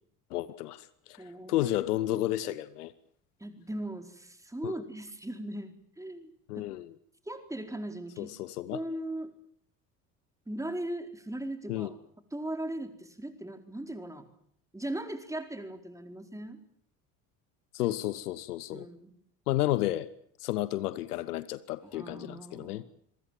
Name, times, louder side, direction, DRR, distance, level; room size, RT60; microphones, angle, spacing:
voice 1, 0.3-1.2 1.5-2.9 4.6-4.7 6.5-6.9 8.2-8.8 11.7-11.9 17.7-18.9 19.5-20.1 20.4-22.9, left 15 dB, 65° left, 1.2 m, -32 dB
voice 2, 1.2-1.7 2.2-2.3 3.4-6.3 6.6-6.7 7.3-8.3 8.7-9.3 10.5-12.0 12.3-14.2 14.7-16.6 18.7-19.1 21.8-22.8, right 1 dB, 5° right, 4.4 m, -38 dB
26.5 x 23.5 x 7.6 m
figure-of-eight pair, 60°, 48 cm